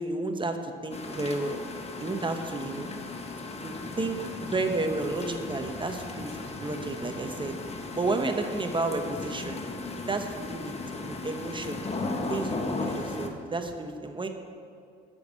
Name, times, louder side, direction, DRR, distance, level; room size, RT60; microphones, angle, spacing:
voice 1, 0.0-1.6 2.0-2.9 3.4-7.6 7.9-9.6 10.1-11.8 12.3-14.3, right 2 dB, 25° right, 5 dB, 1.0 m, -32 dB
sound 1, 0.9-13.3, left 3 dB, 30° left, 1.2 m, -36 dB
11.5 x 6.4 x 7.3 m, 2.3 s
cardioid pair, 90°, 20 cm